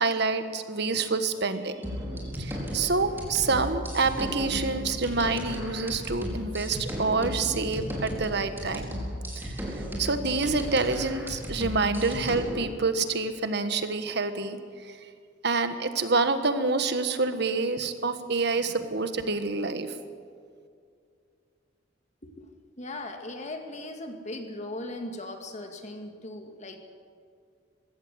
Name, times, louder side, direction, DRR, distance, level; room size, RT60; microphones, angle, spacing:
voice 1, 0.0-1.9 2.4-9.0 9.4-14.6 14.9-15.0 15.4-19.9, right 3 dB, 60° right, 9 dB, 1.5 m, -27 dB
sound 1, 1.8-12.6, equal, 10° right, 4.5 m, -35 dB
voice 2, 22.8-26.8, left 2 dB, 40° left, 4 dB, 2.2 m, -38 dB
21.0 x 16.5 x 7.9 m, 2.2 s
head